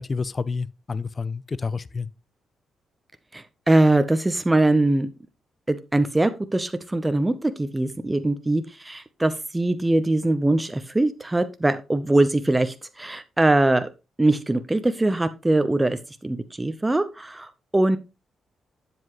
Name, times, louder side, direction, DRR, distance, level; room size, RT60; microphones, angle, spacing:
voice 1, 0.0-2.1, left 4 dB, 40° left, 0.5 m, -29 dB
voice 2, 3.3-5.1 5.7-13.9 14.2-18.0, right 2 dB, 15° right, 0.7 m, -22 dB
8.0 x 7.4 x 3.1 m
supercardioid pair, 60°, 0 cm